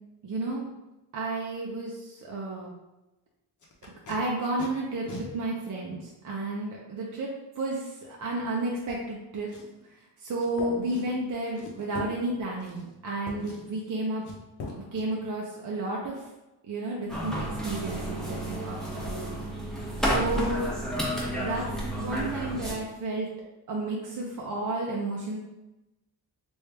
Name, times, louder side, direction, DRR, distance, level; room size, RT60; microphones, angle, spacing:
voice 1, 0.2-0.7 1.1-2.7 4.1-5.1 5.3-9.5 9.8-14.2 14.9-16.3 16.6-18.8 19.1-19.4 20.0-20.7 21.3-23.3 23.7-25.4, right 2 dB, 45° right, -3 dB, 0.7 m, -32 dB
Packing tape duct tape, 3.6-4.2 4.6-4.7 5.1-5.3 6.0-6.1 9.5-9.9 10.4-10.5 10.9-11.2 11.5-11.9 12.6-13.1 13.4-13.8 14.2-14.4 14.7-15.0 18.1-18.2 18.5-18.7 19.0-19.2 19.4-19.7 20.0-20.1, left 2 dB, 45° left, 0.9 m, -45 dB
sound 1, 10.6-11.4 12.0-13.0 13.3-13.9 14.6-15.1, left 3 dB, 75° left, 0.7 m, -41 dB
sound 2, 17.1-22.7, equal, ahead, 0.9 m, -31 dB
3.1 x 2.6 x 3.3 m, 0.99 s
cardioid pair, 90°, 42 cm